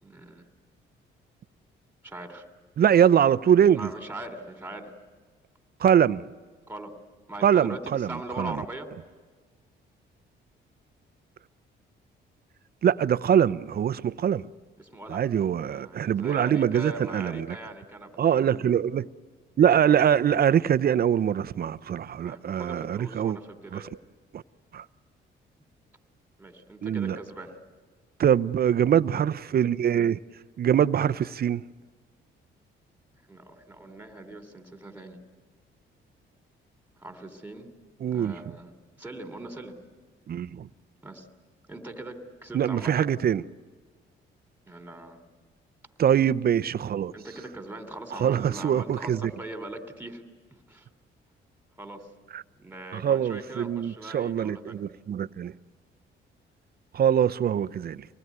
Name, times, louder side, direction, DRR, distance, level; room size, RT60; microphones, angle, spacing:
voice 1, 0.0-0.5 2.0-2.5 3.7-5.0 6.7-7.0 7.3-8.9 14.8-15.3 15.6-18.2 22.2-23.9 26.4-27.5 33.3-35.2 37.0-37.7 38.1-38.7 39.0-39.8 41.0-41.3 41.7-43.1 44.7-45.2 47.1-50.2 50.7-50.9 51.8-52.1 52.6-54.8, right 1 dB, 10° right, 3.2 m, -41 dB
voice 2, 2.8-3.9 5.8-6.2 7.4-8.1 8.4-8.6 12.8-14.4 15.1-17.5 18.2-19.1 19.6-23.4 23.7-23.8 24.3-24.4 24.7-24.8 26.8-27.2 28.2-30.2 30.6-31.6 38.0-38.3 40.3-40.7 42.5-43.4 46.0-47.1 48.2-49.3 52.3-52.4 53.0-55.5 56.9-58.1, right 9 dB, 50° right, 0.7 m, -23 dB
25.0 x 19.5 x 9.5 m
cardioid pair, 90°, 20 cm